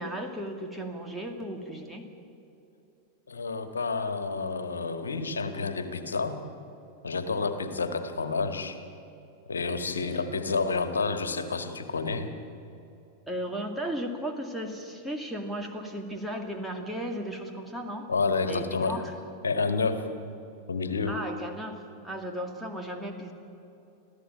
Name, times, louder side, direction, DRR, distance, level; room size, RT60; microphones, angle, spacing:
voice 1, 0.0-2.1 10.0-10.3 13.3-18.1 18.5-19.2 21.1-23.3, equal, 5° right, 1 dB, 2.3 m, -35 dB
voice 2, 3.3-6.4 7.0-8.8 9.5-12.3 18.1-19.0 19.4-20.1 20.7-21.2, left 4 dB, 70° left, 8 dB, 1.8 m, -29 dB
26.5 x 15.5 x 9.0 m, 2.9 s
figure-of-eight pair, 90°, 0 cm